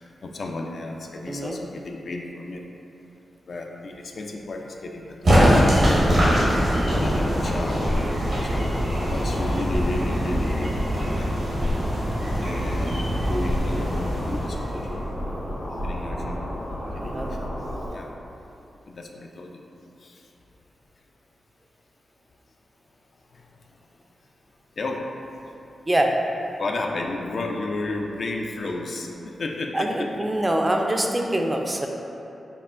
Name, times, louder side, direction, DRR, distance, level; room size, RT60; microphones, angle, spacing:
voice 1, 0.0-2.6 3.5-6.3 6.9-8.0 8.4-11.3 12.3-15.1 15.5-16.4 16.9-17.5 17.9-18.1 18.9-19.6 20.0-20.3 23.3-23.5 24.8-25.1 26.6-30.1, left 2 dB, 65° left, 1 dB, 0.3 m, -33 dB
voice 2, 1.3-1.6 6.7-7.0 17.0-17.3 25.9-26.1 29.7-31.9, right 1 dB, 25° right, 2 dB, 0.4 m, -24 dB
sound 1, 5.2-15.1, equal, 75° right, 1.3 m, -23 dB
sound 2, 7.3-17.9, equal, 80° left, 1.2 m, -32 dB
5.4 x 2.1 x 2.4 m, 2.9 s
cardioid pair, 45°, 0 cm